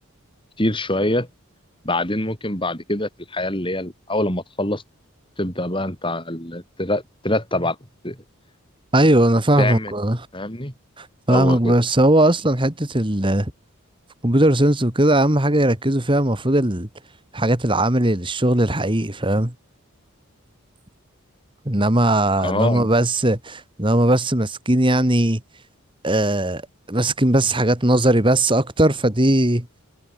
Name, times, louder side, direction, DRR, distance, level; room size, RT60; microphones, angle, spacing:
voice 1, 0.6-1.3 1.8-4.8 5.4-7.8 8.0-8.2 9.6-9.9 10.3-10.7 11.3-11.7 22.4-22.9, left 1 dB, 25° left, 7.9 m, -24 dB
voice 2, 8.9-10.2 11.0-13.5 14.2-16.9 17.3-19.5 21.7-25.4 26.0-26.6 26.9-29.7, right 1 dB, 25° right, 2.1 m, -18 dB
head